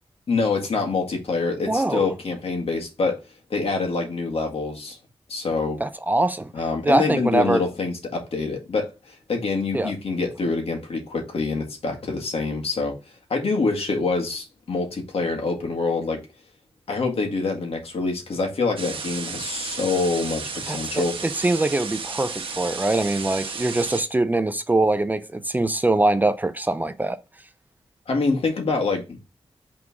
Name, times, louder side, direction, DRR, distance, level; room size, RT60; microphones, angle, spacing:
voice 1, 0.3-3.2 3.5-5.0 5.3-5.8 6.5-13.0 13.3-16.2 16.9-21.1 28.1-29.2, left 3 dB, 75° left, 1.7 m, -25 dB
voice 2, 1.7-2.1 5.8-6.5 6.9-7.6 9.7-9.9 20.7-21.0 21.4-27.2, right 2 dB, 15° right, 0.4 m, -23 dB
sound 1, 18.8-24.0, right 4 dB, 65° right, 1.0 m, -33 dB
5.9 x 3.7 x 4.7 m
wide cardioid pair, 170°, 10 cm